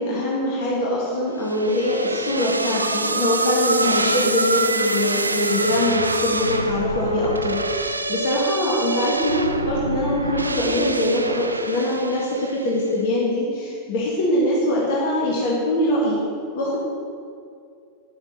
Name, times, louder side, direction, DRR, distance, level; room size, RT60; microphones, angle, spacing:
voice 1, 0.0-16.2 16.5-16.8, left 1 dB, 50° left, -5 dB, 1.5 m, -23 dB
sound 1, 1.5-12.8, right 2 dB, 80° right, 0.3 m, -26 dB
9.8 x 6.0 x 4.2 m, 2.4 s
figure-of-eight pair, 90°, 0 cm